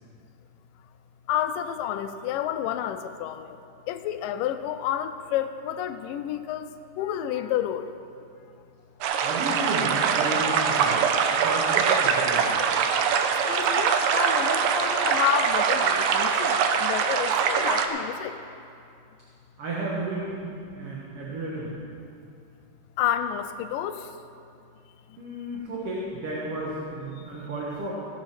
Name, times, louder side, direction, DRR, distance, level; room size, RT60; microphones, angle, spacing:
voice 1, 1.3-3.6 3.9-6.7 7.0-7.9 13.5-18.4 23.0-24.0, left 10 dB, 85° left, 9 dB, 2.2 m, -29 dB
sound 1, 9.0-17.9, right 6 dB, 80° right, 2.3 m, -23 dB
voice 2, 9.2-11.0 11.4-12.5 19.6-20.4 20.7-21.8 25.2-27.9, right 2 dB, 50° right, -5 dB, 2.1 m, -32 dB
16.5 x 7.8 x 6.0 m, 2.5 s
omnidirectional pair, 3.8 m